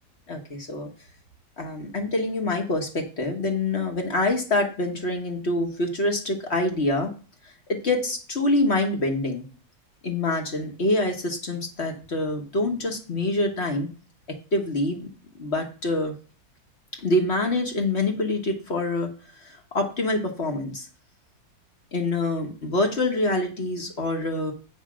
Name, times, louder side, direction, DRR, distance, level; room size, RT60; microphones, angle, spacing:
voice 1, 0.3-0.9 1.6-7.1 7.7-9.4 10.0-13.9 14.5-15.1 15.4-16.1 17.0-19.1 19.4-20.9 21.9-24.5, left 2 dB, 40° left, 3 dB, 1.4 m, -26 dB
8.1 x 5.1 x 6.2 m, 0.37 s
omnidirectional pair, 2.0 m